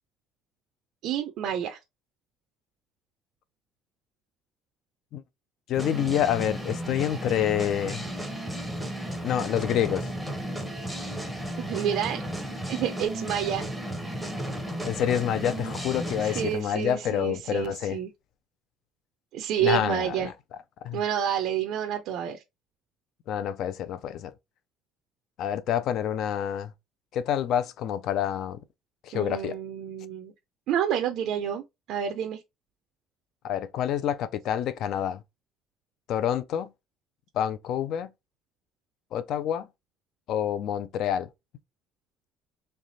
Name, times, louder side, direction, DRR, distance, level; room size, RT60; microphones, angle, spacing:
voice 1, 1.0-1.8 11.6-12.2 12.7-13.6 16.2-18.1 19.3-20.3 20.9-22.4 29.1-30.3 30.7-32.4, right 9 dB, 50° right, 0.5 m, -29 dB
voice 2, 5.7-8.1 9.2-10.1 14.8-18.0 19.6-20.3 20.8-21.0 23.3-24.3 25.4-26.7 27.1-28.6 29.0-29.6 33.4-35.2 36.1-36.7 37.3-38.1 39.1-39.7 40.3-41.3, left 10 dB, 50° left, 0.4 m, -27 dB
sound 1, 5.8-16.5, right 1 dB, ahead, 0.7 m, -34 dB
3.3 x 3.2 x 4.0 m
cardioid pair, 180°, 0 cm